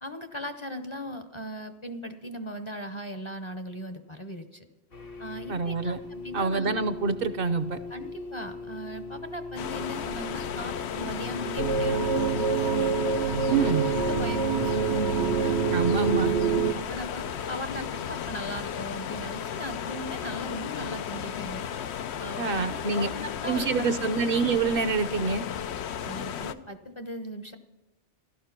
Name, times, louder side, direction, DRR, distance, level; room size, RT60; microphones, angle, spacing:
voice 1, 0.0-4.6 5.2-6.8 7.9-13.0 13.6-15.9 16.4-21.7 22.2-22.7 22.9-23.9 26.0-27.6, equal, 30° left, 8 dB, 0.7 m, -38 dB
sound 1, 4.9-16.6, left 3 dB, 60° left, 1.4 m, -41 dB
voice 2, 5.5-6.0 6.3-7.8 13.5-13.9 15.7-16.3 22.4-23.1 23.5-25.4, right 4 dB, 60° right, 13 dB, 0.9 m, -26 dB
sound 2, 9.6-26.5, left 8 dB, 85° left, 0.9 m, -34 dB
sound 3, 11.6-16.7, right 6 dB, 85° right, 1.1 m, -26 dB
15.0 x 12.0 x 5.8 m, 1.0 s
omnidirectional pair, 1.1 m